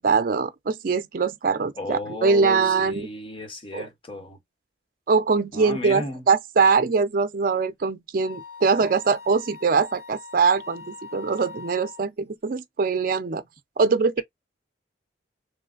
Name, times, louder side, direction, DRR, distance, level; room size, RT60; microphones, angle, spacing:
voice 1, 0.0-3.1 3.7-3.9 5.1-13.4 13.8-14.2, right 4 dB, 50° right, 0.4 m, -22 dB
voice 2, 1.8-4.4 5.5-6.3, left 2 dB, 30° left, 0.8 m, -34 dB
Wind instrument woodwind instrument, 8.2-12.1, left 4 dB, 80° left, 1.3 m, -42 dB
3.2 x 3.1 x 2.4 m
head